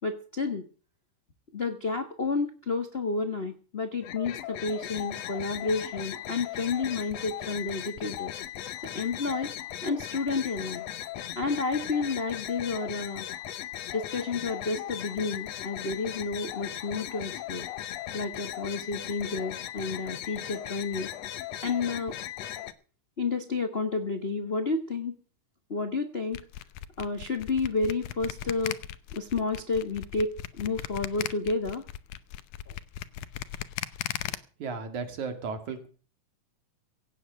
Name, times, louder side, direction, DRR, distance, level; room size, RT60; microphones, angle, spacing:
voice 1, 0.0-0.7 1.5-8.3 8.9-9.5 9.8-10.8 11.3-13.3 13.9-17.7 18.1-21.1 21.6-22.2 23.2-25.2 25.7-26.4 27.0-28.8 29.1-31.8 32.7-32.8, left 4 dB, 50° left, 6 dB, 0.7 m, -30 dB
sound 1, 4.0-22.7, left 12 dB, 65° left, 1.9 m, -38 dB
sound 2, 26.3-34.4, left 13 dB, 85° left, 2.3 m, -37 dB
voice 2, 34.6-35.9, right 5 dB, 75° right, 7 dB, 3.7 m, -34 dB
17.0 x 8.3 x 6.4 m, 0.39 s
omnidirectional pair, 3.5 m